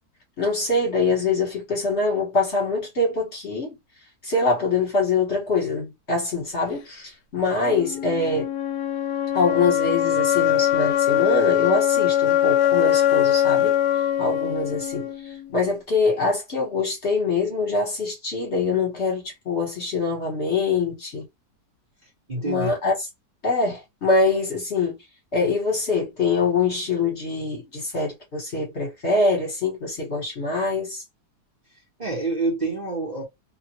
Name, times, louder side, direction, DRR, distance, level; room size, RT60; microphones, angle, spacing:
voice 1, 0.4-3.8 4.2-8.5 9.3-13.8 14.2-21.2 22.4-22.9 23.4-24.9 25.3-31.0, left 3 dB, 45° left, 1.5 m, -24 dB
sound 1, 7.6-15.6, left 11 dB, 75° left, 1.1 m, -22 dB
voice 2, 22.3-22.7 32.0-33.2, right 3 dB, 30° right, 1.0 m, -27 dB
2.9 x 2.4 x 2.9 m
omnidirectional pair, 1.7 m